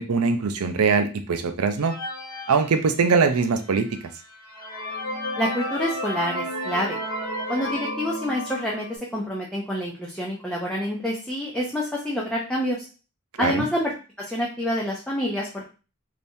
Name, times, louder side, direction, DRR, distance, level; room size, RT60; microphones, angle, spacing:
voice 1, 0.0-1.9 2.5-3.9 13.4-13.7, right 5 dB, 90° right, 8 dB, 0.5 m, -22 dB
sound 1, 1.8-3.4 4.0-4.1 4.4-9.0, equal, 75° left, 1.0 m, -32 dB
voice 2, 5.4-7.0 7.5-12.9 13.4-13.9 14.2-15.7, equal, 5° left, -4 dB, 0.5 m, -27 dB
3.4 x 2.8 x 2.6 m, 0.34 s
head